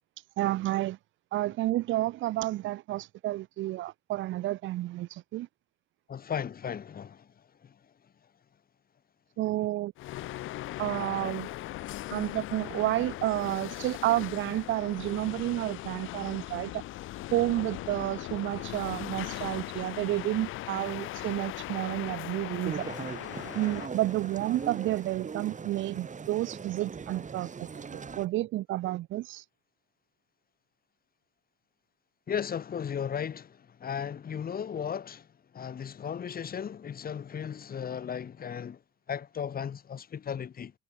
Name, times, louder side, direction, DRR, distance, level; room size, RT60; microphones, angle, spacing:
voice 1, 0.4-1.0 1.3-5.5 9.4-9.9 10.8-11.5 12.1-16.8 17.3-22.9 23.5-29.4, right 16 dB, 75° right, 0.5 m, -30 dB
voice 2, 6.1-7.3 32.3-35.3 35.5-38.8 39.1-40.7, left 8 dB, 50° left, 1.7 m, -35 dB
sound 1, 10.0-25.1, left 16 dB, 85° left, 1.1 m, -39 dB
sound 2, 22.6-28.3, right 5 dB, 40° right, 4.8 m, -40 dB
cardioid pair, 90°, 20 cm